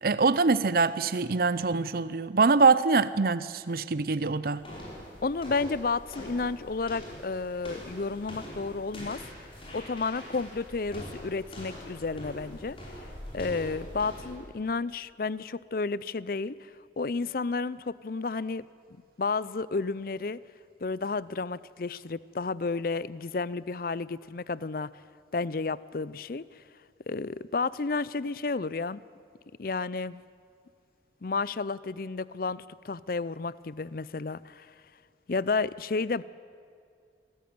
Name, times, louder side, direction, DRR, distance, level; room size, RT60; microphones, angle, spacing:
voice 1, 0.0-4.6, right 4 dB, 55° right, 15 dB, 0.6 m, -24 dB
sound 1, 4.6-14.5, equal, 30° left, 5.0 m, -43 dB
voice 2, 5.2-9.2 9.7-12.8 13.3-16.7 17.0-18.7 19.2-20.4 20.8-24.9 25.3-26.6 27.1-29.0 29.6-30.2 31.2-34.7 35.3-36.2, left 4 dB, 50° left, 19 dB, 0.5 m, -31 dB
25.5 x 14.0 x 9.5 m, 2.3 s
head